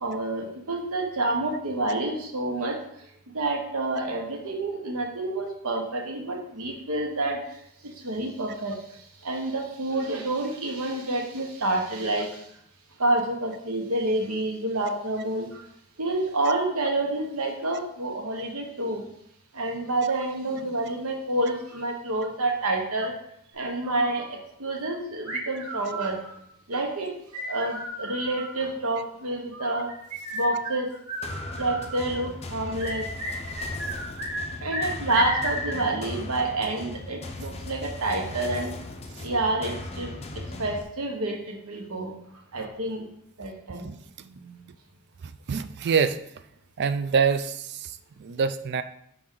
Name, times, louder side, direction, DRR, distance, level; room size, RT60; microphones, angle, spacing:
voice 1, 0.0-2.8 3.3-7.4 8.0-8.8 9.2-12.4 13.0-15.6 16.0-19.0 19.5-23.1 23.5-26.2 26.7-27.1 27.4-29.9 30.3-30.9 31.6-33.1 34.6-38.7 39.2-40.2 40.6-42.1 42.5-43.0 43.4-43.9, right 2 dB, 70° right, 3 dB, 1.2 m, -28 dB
sound 1, 23.6-24.3 25.3-26.4 27.3-28.6 29.5-32.0 32.8-34.5 34.7-35.9, right 1 dB, 90° right, 2.4 m, -34 dB
sound 2, 31.2-40.8, left 2 dB, 30° left, 0.5 m, -38 dB
voice 2, 43.8-44.6 45.2-46.2 46.8-48.8, right 6 dB, 50° right, 11 dB, 0.4 m, -27 dB
6.0 x 4.9 x 3.8 m, 0.72 s
head